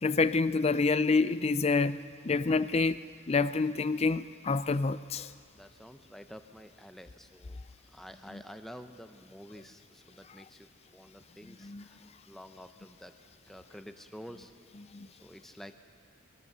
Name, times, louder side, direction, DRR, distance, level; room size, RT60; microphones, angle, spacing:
voice 1, 0.0-3.0 3.3-5.3 8.3-8.4 11.6-11.8 14.9-15.1, left 4 dB, 30° left, 15 dB, 0.4 m, -27 dB
voice 2, 5.2-7.6 7.8-13.1 13.5-14.5 15.1-15.7, equal, ahead, 8 dB, 0.7 m, -50 dB
21.5 x 18.5 x 6.8 m, 2.2 s
head